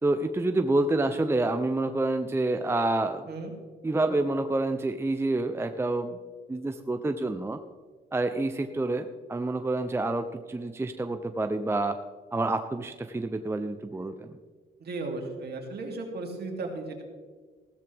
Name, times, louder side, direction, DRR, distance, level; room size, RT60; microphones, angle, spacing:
voice 1, 0.0-3.3 3.8-6.2 6.5-7.6 8.1-12.0 12.3-14.3, right 2 dB, 10° right, 8 dB, 0.6 m, -28 dB
voice 2, 14.8-17.0, right 3 dB, 55° right, 2 dB, 2.8 m, -35 dB
15.5 x 13.0 x 3.5 m, 1.5 s
cardioid pair, 90°, 20 cm